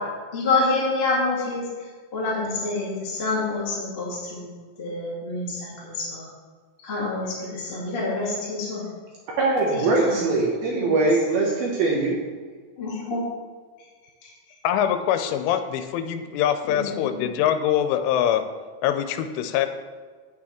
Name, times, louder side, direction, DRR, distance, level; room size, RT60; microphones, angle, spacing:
voice 1, 0.3-1.7 2.1-4.5 4.8-6.3 6.8-8.8 9.7-10.2 10.7-10.9 12.8-13.2 14.2-14.3 16.7-17.2, left 3 dB, 35° left, -6 dB, 0.9 m, -27 dB
voice 2, 9.4-12.2, right 3 dB, 70° right, -2 dB, 2.4 m, -22 dB
voice 3, 14.6-18.5 18.8-19.7, left 10 dB, 85° left, 9 dB, 3.2 m, -23 dB
8.7 x 8.6 x 4.4 m, 1.5 s
omnidirectional pair, 5.5 m